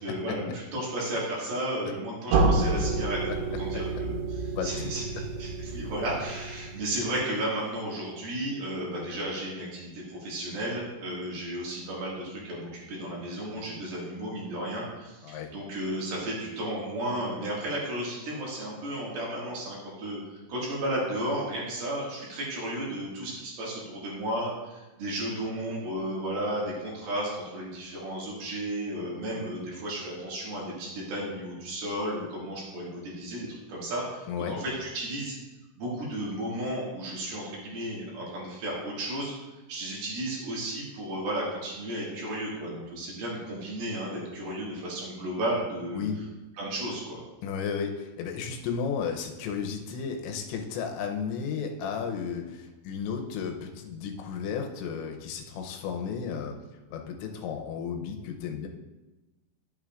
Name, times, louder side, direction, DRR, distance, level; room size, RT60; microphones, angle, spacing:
voice 1, 0.0-3.2 3.6-35.4 35.8-39.3 39.7-46.0 46.6-47.2, right 1 dB, 60° right, -5 dB, 3.7 m, -33 dB
sound 1, 2.3-7.1, right 3 dB, 85° right, 3.5 m, -29 dB
voice 2, 4.6-5.1 15.2-15.5 34.3-34.6 45.9-46.2 47.4-56.6 56.9-58.7, left 6 dB, 85° left, 3 dB, 3.0 m, -33 dB
11.0 x 8.6 x 2.5 m, 1.1 s
omnidirectional pair, 5.3 m